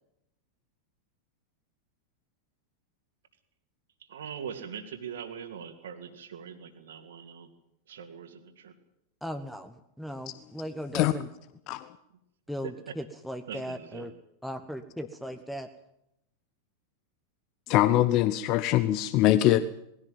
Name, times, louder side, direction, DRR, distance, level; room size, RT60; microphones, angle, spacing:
voice 1, 4.0-7.5 7.9-8.7 12.6-12.7 13.5-14.1, right 7 dB, 60° right, 2.6 m, -41 dB
voice 2, 9.2-11.3 12.5-14.1 14.4-15.7, equal, ahead, 1.2 m, -38 dB
voice 3, 17.7-19.8, left 13 dB, 40° left, 0.8 m, -23 dB
20.0 x 16.5 x 9.1 m
figure-of-eight pair, 90°, 0 cm